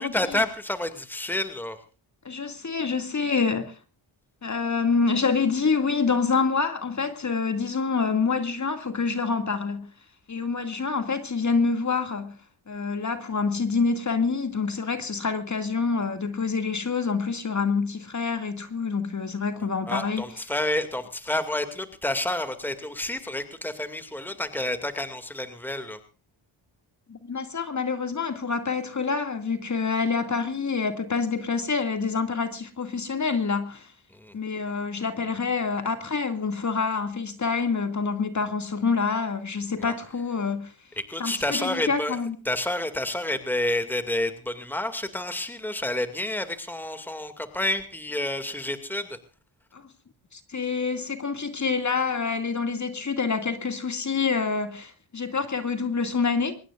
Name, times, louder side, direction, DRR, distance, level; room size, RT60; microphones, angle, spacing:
voice 1, 0.0-1.8 19.9-26.0 34.1-34.3 39.8-39.9 41.0-42.2 42.5-49.2, left 1 dB, 5° left, 2.3 m, -29 dB
voice 2, 2.2-3.8 4.4-9.9 10.3-12.4 12.7-20.2 27.1-33.9 34.3-40.7 41.2-42.4 49.7-49.8 50.3-56.6, left 5 dB, 35° left, 2.3 m, -27 dB
24.0 x 20.0 x 2.5 m
cardioid pair, 90°, 48 cm